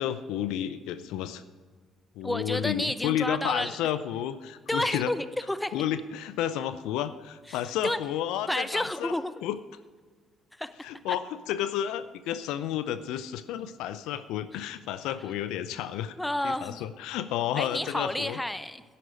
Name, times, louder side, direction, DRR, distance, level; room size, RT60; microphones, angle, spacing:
voice 1, 0.0-1.4 2.2-5.1 5.7-9.1 9.4-9.6 10.8-16.1 16.4-18.4, left 11 dB, 70° left, 13 dB, 0.5 m, -31 dB
voice 2, 2.2-3.8 4.7-5.8 7.5-8.0 8.5-9.3 10.5-10.7 11.1-11.2 16.2-16.8 17.6-18.8, left 1 dB, 10° left, 13 dB, 0.8 m, -30 dB
11.0 x 10.0 x 5.1 m, 1.5 s
hypercardioid pair, 50°, 0 cm